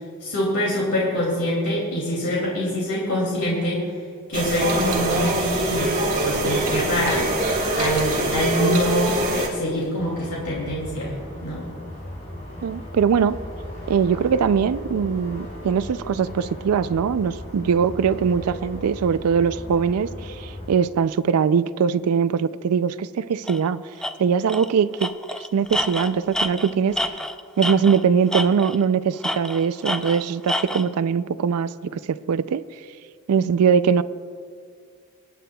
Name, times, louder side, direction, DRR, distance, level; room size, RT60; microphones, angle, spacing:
voice 1, 0.2-3.8 4.3-5.9 6.2-7.3 7.7-11.1 11.4-11.6, equal, 85° left, -4 dB, 2.5 m, -25 dB
sound 1, 4.3-9.5, right 2 dB, 35° right, 1.8 m, -23 dB
sound 2, 10.0-20.7, equal, 30° left, 3.5 m, -37 dB
voice 2, 12.6-13.4 13.9-23.8 24.2-25.1 25.5-27.1 27.6-32.6 33.3-34.0, right 6 dB, 85° right, 15 dB, 0.4 m, -21 dB
Tools, 23.5-23.6 24.0-24.1 24.5-24.7 25.0-28.0 28.3-28.8 29.2-30.9, left 1 dB, 5° left, 0.4 m, -27 dB
25.5 x 9.2 x 2.3 m, 2.2 s
head